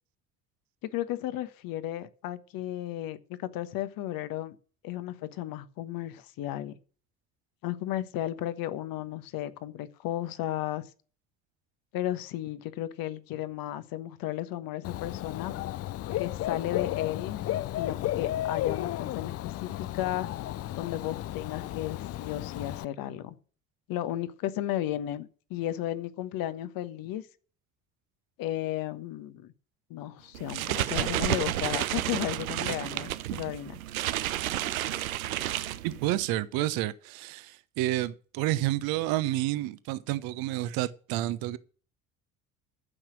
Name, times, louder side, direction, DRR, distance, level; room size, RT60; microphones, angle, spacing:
voice 1, 0.9-4.5 4.8-6.7 7.6-10.8 11.9-15.5 16.1-17.4 17.7-20.3 20.8-23.4 23.9-27.2 28.4-29.5 29.9-33.8, left 13 dB, 55° left, 1.3 m, -34 dB
Dog / Bird, 14.8-22.8, left 14 dB, 35° left, 0.5 m, -33 dB
sound 1, 30.3-36.3, right 13 dB, 80° right, 0.7 m, -31 dB
voice 2, 35.8-41.6, right 15 dB, 60° right, 1.0 m, -30 dB
14.5 x 5.9 x 6.2 m
figure-of-eight pair, 55°, 41 cm